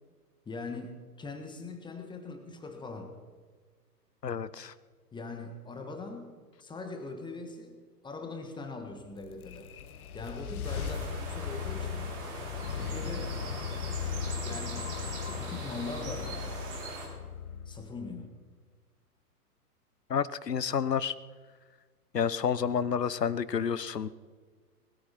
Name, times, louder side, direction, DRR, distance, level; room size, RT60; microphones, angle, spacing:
voice 1, 0.4-3.1 5.1-6.3 6.6-9.7 10.1-12.1 12.7-13.4 14.4-14.9 15.2-16.6 17.7-18.3, left 3 dB, 10° left, 5 dB, 1.5 m, -41 dB
voice 2, 4.2-4.7 20.1-21.1 22.1-24.1, left 7 dB, 85° left, 17 dB, 0.9 m, -29 dB
sound 1, 9.2-18.3, left 7 dB, 60° left, 1.2 m, -37 dB
sound 2, 10.6-17.1, right 3 dB, 45° right, 6.1 m, -42 dB
20.5 x 14.0 x 4.3 m, 1.5 s
figure-of-eight pair, 110°, 48 cm